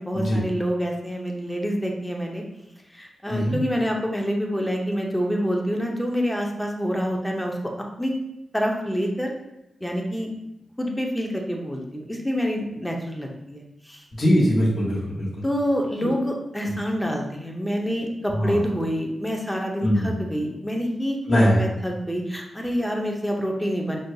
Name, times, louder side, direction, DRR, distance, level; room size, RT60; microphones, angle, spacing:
voice 1, 0.0-2.4 2.9-7.7 8.0-8.2 8.5-9.3 9.8-10.3 10.8-14.0 15.4-24.0, equal, 5° left, 0 dB, 0.6 m, -27 dB
voice 2, 14.1-15.3 16.0-16.1 16.7-16.8 18.3-18.6 19.8-20.1 21.3-21.6, equal, 60° left, -6 dB, 1.4 m, -21 dB
6.1 x 2.2 x 2.7 m, 0.86 s
wide cardioid pair, 120°, 0 cm